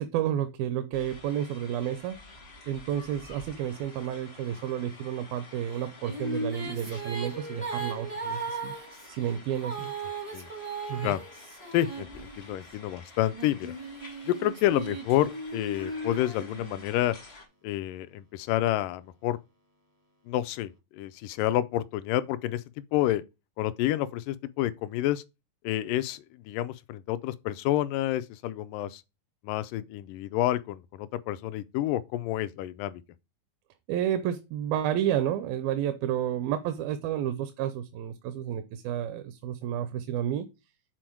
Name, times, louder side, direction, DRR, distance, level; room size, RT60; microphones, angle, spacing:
voice 1, 0.0-2.2 2.7-8.7 9.1-9.9 10.9-11.2 33.9-40.5, right 10 dB, 85° right, 2.5 m, -31 dB
sound 1, 0.9-17.5, left 2 dB, 50° left, 0.7 m, -50 dB
Female singing, 5.7-12.7 13.3-17.1, right 3 dB, 55° right, 0.4 m, -37 dB
voice 2, 11.7-13.7 14.3-17.2 17.6-19.4 20.3-22.6 22.9-23.2 23.6-25.2 25.6-29.0 29.4-33.0, left 13 dB, 80° left, 2.0 m, -29 dB
7.7 x 4.3 x 4.5 m
omnidirectional pair, 4.2 m